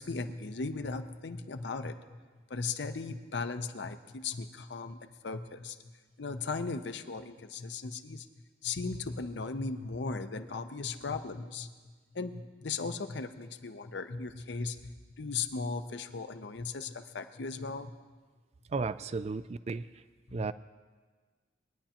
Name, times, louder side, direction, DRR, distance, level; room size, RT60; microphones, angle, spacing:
voice 1, 0.0-2.0 2.5-5.8 6.2-8.3 8.6-11.7 12.1-17.9 20.3-20.4, left 4 dB, 60° left, 9 dB, 0.6 m, -37 dB
voice 2, 18.7-19.9 20.3-20.5, right 4 dB, 35° right, 15 dB, 0.3 m, -34 dB
21.0 x 10.0 x 2.9 m, 1.4 s
head